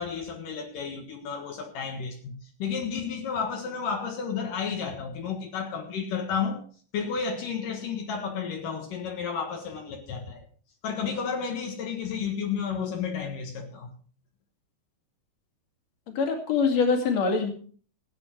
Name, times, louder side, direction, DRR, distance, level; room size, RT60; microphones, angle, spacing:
voice 1, 0.0-6.6 6.9-10.4 10.8-13.9, left 6 dB, 75° left, 3.1 m, -32 dB
voice 2, 16.1-17.5, left 5 dB, 55° left, 3.3 m, -24 dB
18.5 x 8.9 x 4.6 m
omnidirectional pair, 3.9 m